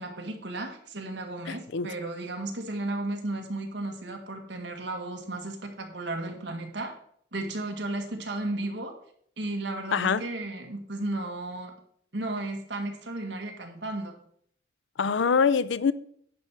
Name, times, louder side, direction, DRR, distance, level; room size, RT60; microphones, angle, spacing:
voice 1, 0.0-6.9 7.3-8.9 9.4-11.7 12.1-14.1, right 2 dB, 65° right, 1.7 m, -34 dB
voice 2, 1.5-1.9 9.9-10.2 15.0-15.9, left 6 dB, 80° left, 0.5 m, -24 dB
10.0 x 6.1 x 4.5 m
head